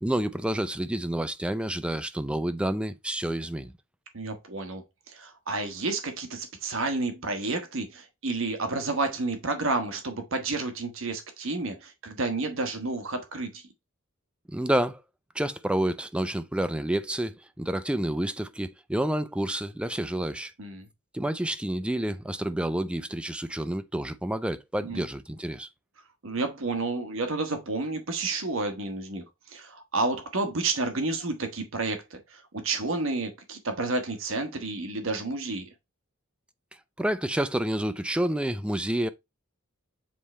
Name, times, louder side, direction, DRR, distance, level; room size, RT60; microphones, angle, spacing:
voice 1, 0.0-3.7 14.5-15.0 15.3-20.5 21.1-25.7 37.0-39.1, right 1 dB, 5° right, 0.4 m, -29 dB
voice 2, 4.1-13.6 20.6-20.9 24.8-25.0 26.2-35.7, right 3 dB, 65° right, 1.2 m, -30 dB
7.4 x 3.3 x 4.2 m
head